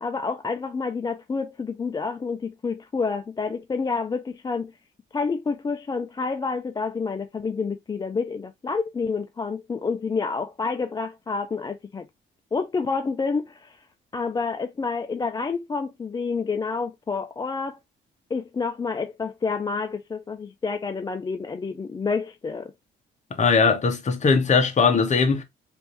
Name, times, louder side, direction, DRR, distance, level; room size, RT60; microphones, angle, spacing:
voice 1, 0.0-4.7 5.1-12.1 12.5-13.8 14.1-17.8 18.3-22.7, left 4 dB, 20° left, 0.3 m, -28 dB
voice 2, 23.4-25.4, left 5 dB, 35° left, 1.0 m, -20 dB
3.4 x 2.6 x 3.0 m
cardioid pair, 90°, 20 cm